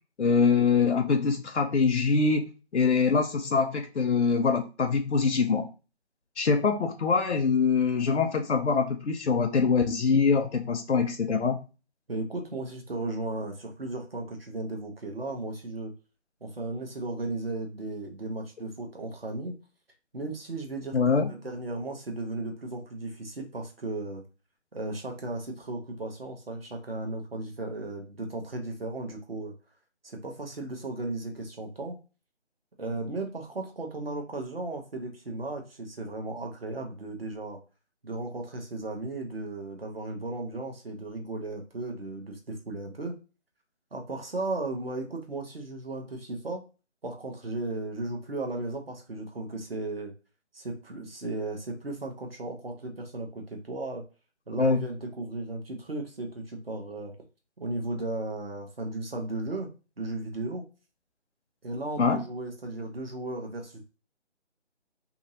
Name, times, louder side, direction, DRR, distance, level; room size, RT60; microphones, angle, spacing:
voice 1, 0.2-5.7 6.4-11.6 20.9-21.3 54.6-54.9 62.0-62.2, left 5 dB, 75° left, 5 dB, 0.5 m, -24 dB
voice 2, 12.1-15.9 16.4-19.6 20.1-24.2 24.7-29.5 30.0-32.0 32.8-37.6 38.0-43.2 43.9-46.6 47.0-50.1 50.5-54.0 54.5-57.1 57.6-59.7 60.0-60.7 61.6-63.8, right 2 dB, 55° right, 2 dB, 0.9 m, -35 dB
2.8 x 2.7 x 2.6 m, 0.31 s
figure-of-eight pair, 155°, 34 cm